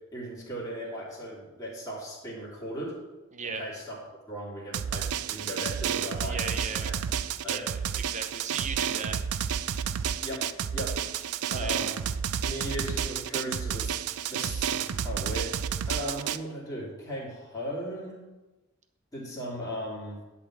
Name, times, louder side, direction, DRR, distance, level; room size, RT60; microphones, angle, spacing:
voice 1, 0.1-3.0 3.4-4.0 4.3-6.9 7.4-7.7 9.9-10.5 10.7-11.0 11.5-11.9 12.4-14.0 14.3-15.6 15.9-18.2 19.1-20.2, equal, 15° left, -7 dB, 2.5 m, -37 dB
voice 2, 3.3-3.6 6.2-6.9 7.4-9.2 11.5-11.8, right 4 dB, 35° right, 7 dB, 0.8 m, -37 dB
Drum, 4.7-16.4, right 8 dB, 85° right, 0.4 m, -31 dB
11.0 x 4.2 x 7.3 m, 1.1 s
head